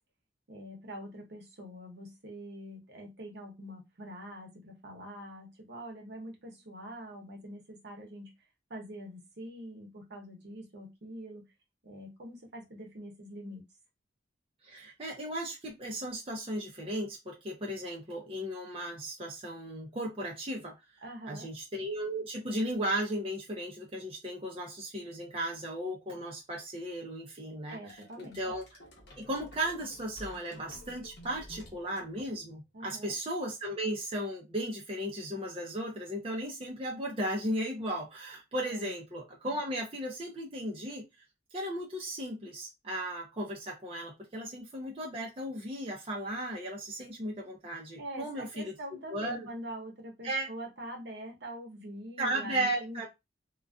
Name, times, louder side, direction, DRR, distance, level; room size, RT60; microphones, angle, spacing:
voice 1, 0.5-8.3 8.7-11.5 11.8-13.7 21.0-21.5 27.7-28.4 32.7-33.1 38.7-38.9 48.0-53.1, right 1 dB, 65° right, 1 dB, 0.9 m, -44 dB
voice 2, 14.6-20.7 21.3-28.6 29.2-41.0 41.5-48.7 49.1-49.5 50.2-50.5 52.2-53.1, right 1 dB, 30° right, -1 dB, 0.6 m, -36 dB
sound 1, 27.9-32.7, equal, 65° left, 0.8 m, -52 dB
2.5 x 2.2 x 2.3 m, 0.22 s
head